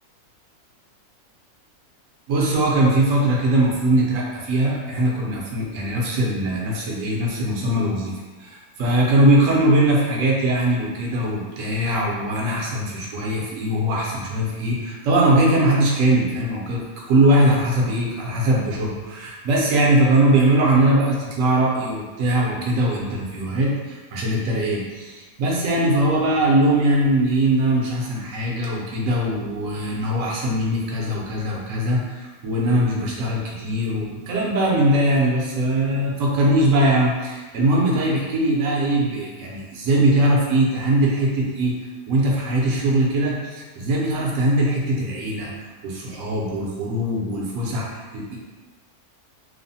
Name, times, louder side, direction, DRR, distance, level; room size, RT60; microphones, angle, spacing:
voice 1, 2.3-8.1 8.4-41.7 42.1-48.4, right 1 dB, 70° right, -3 dB, 0.9 m, -21 dB
3.0 x 2.0 x 2.6 m, 1.3 s
omnidirectional pair, 1.6 m